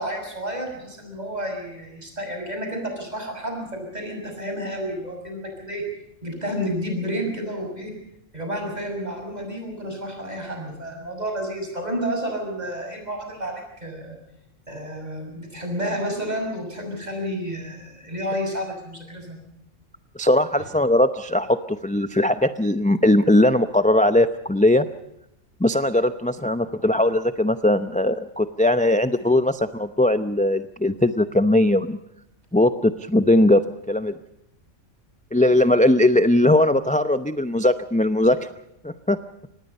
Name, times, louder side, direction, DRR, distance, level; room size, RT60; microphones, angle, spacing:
voice 1, 0.0-5.8 6.2-7.9 8.3-14.2 14.7-19.4 20.6-20.7, equal, 35° right, 2 dB, 6.8 m, -30 dB
voice 2, 20.2-24.9 25.6-32.0 32.5-33.6 33.9-34.1 35.3-38.4 38.8-39.2, left 1 dB, 10° left, 10 dB, 0.5 m, -19 dB
25.5 x 19.5 x 5.4 m, 0.82 s
omnidirectional pair, 1.3 m